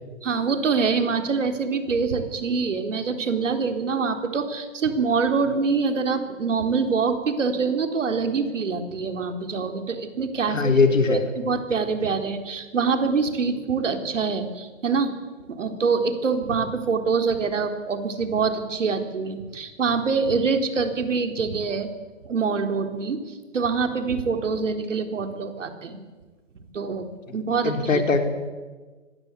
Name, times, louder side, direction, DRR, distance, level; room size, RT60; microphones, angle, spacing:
voice 1, 0.2-10.8 11.1-15.1 15.5-21.9 22.2-26.0 26.7-28.0, right 5 dB, 70° right, 6 dB, 4.0 m, -25 dB
voice 2, 10.5-11.2 27.6-28.2, left 4 dB, 90° left, 5 dB, 4.4 m, -20 dB
25.0 x 19.5 x 8.4 m, 1.3 s
hypercardioid pair, 150°, 38 cm